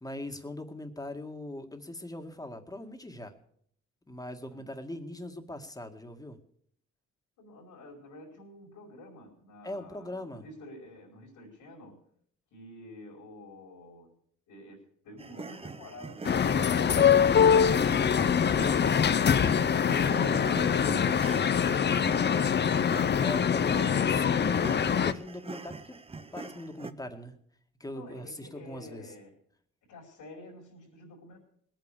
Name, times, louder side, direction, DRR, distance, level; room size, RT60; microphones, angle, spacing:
voice 1, 0.0-3.3 4.1-6.4 9.6-10.4 23.2-26.0 26.3-27.3 27.8-29.1, left 1 dB, 10° left, 5 dB, 2.0 m, -41 dB
voice 2, 7.4-12.0 12.5-14.1 14.5-18.3 27.9-29.4 29.8-31.4, left 1 dB, 80° left, -5 dB, 5.2 m, -49 dB
sound 1, 15.2-26.9, right 3 dB, 20° right, 0.8 m, -43 dB
sound 2, 16.2-25.1, left 7 dB, 35° left, 0.7 m, -24 dB
19.5 x 9.1 x 6.7 m, 0.63 s
cardioid pair, 90°, 30 cm